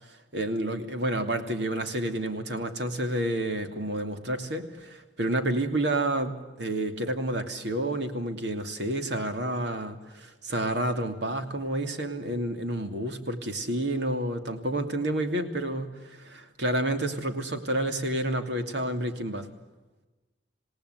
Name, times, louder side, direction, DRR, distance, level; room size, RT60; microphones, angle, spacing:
voice 1, 0.3-19.5, right 1 dB, 70° right, 6 dB, 2.8 m, -29 dB
27.5 x 18.0 x 8.2 m, 1.2 s
head